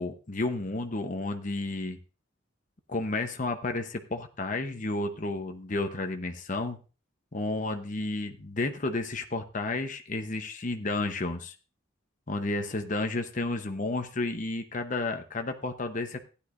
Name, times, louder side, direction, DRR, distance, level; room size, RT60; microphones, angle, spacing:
voice 1, 0.0-2.0 2.9-6.8 7.3-11.5 12.3-16.2, left 2 dB, 40° left, 6 dB, 0.9 m, -32 dB
15.5 x 10.0 x 2.6 m, 0.34 s
head